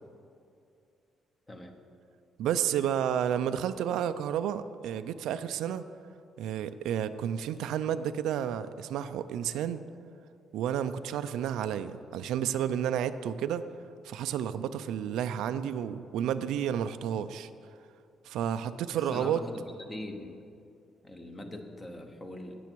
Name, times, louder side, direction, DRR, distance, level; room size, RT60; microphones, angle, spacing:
voice 1, 1.5-1.8 18.9-20.3 21.0-22.5, left 1 dB, 15° left, 5 dB, 0.9 m, -42 dB
voice 2, 2.4-5.9 6.4-9.8 10.5-13.7 14.0-17.5 18.2-19.4, right 9 dB, 90° right, 12 dB, 0.4 m, -31 dB
16.5 x 6.9 x 4.6 m, 2.5 s
cardioid pair, 155°, 0 cm